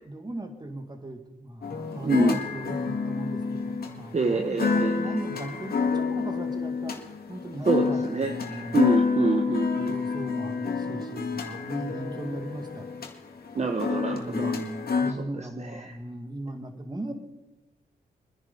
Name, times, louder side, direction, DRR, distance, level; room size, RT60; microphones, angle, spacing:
voice 1, 0.0-8.8 9.9-12.9 14.1-17.1, right 1 dB, 25° right, 6 dB, 2.2 m, -38 dB
sound 1, 1.6-15.1, left 5 dB, 60° left, 2.0 m, -28 dB
voice 2, 2.0-2.4 4.1-5.1 7.7-8.3 8.7-9.9 13.5-14.5 15.4-15.9, right 4 dB, 40° right, 5 dB, 1.2 m, -27 dB
23.5 x 10.5 x 4.3 m, 0.99 s
cardioid pair, 60°, 18 cm